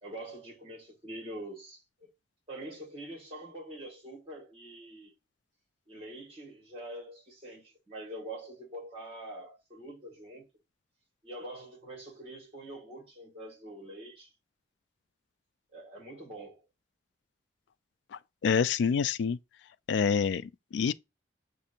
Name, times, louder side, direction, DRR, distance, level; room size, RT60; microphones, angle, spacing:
voice 1, 0.0-2.1 2.5-5.1 5.9-10.5 11.2-14.3 15.7-16.6, right 1 dB, 30° right, 2.0 m, -44 dB
voice 2, 18.1-19.4 19.9-20.9, left 6 dB, 70° left, 0.3 m, -27 dB
6.5 x 2.6 x 2.7 m
head